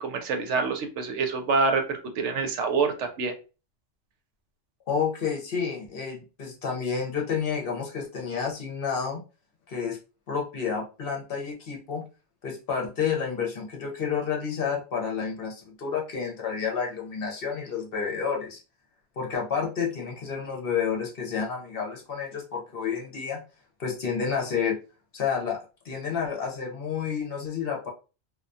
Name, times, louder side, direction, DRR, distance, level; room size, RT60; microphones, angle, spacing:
voice 1, 0.0-3.3, right 4 dB, 80° right, 5 dB, 0.9 m, -26 dB
voice 2, 4.9-9.2 9.7-10.0 10.3-12.0 12.4-18.6 19.2-23.4 23.8-24.8 25.1-25.6 25.8-27.9, left 6 dB, 55° left, 0 dB, 0.8 m, -30 dB
2.3 x 2.2 x 2.5 m, 0.32 s
omnidirectional pair, 1.2 m